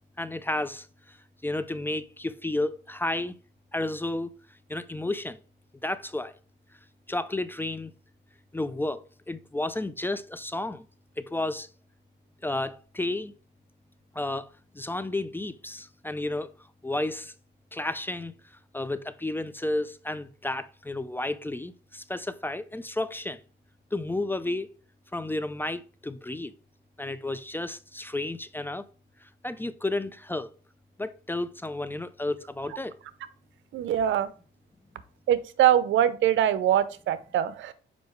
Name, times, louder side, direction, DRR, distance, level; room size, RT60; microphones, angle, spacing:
voice 1, 0.2-1.2 1.4-3.3 3.7-4.3 4.7-5.4 5.8-6.3 7.1-7.9 8.5-10.8 11.2-11.7 12.4-13.3 14.1-14.5 14.7-16.5 16.8-17.3 17.7-18.3 18.7-23.4 23.9-24.7 25.1-26.5 27.0-28.8 29.4-30.5 31.0-33.0, left 2 dB, 10° left, 0.5 m, -32 dB
voice 2, 33.7-34.3 35.3-37.7, right 11 dB, 75° right, 0.7 m, -23 dB
6.8 x 5.1 x 3.1 m
cardioid pair, 90°, 20 cm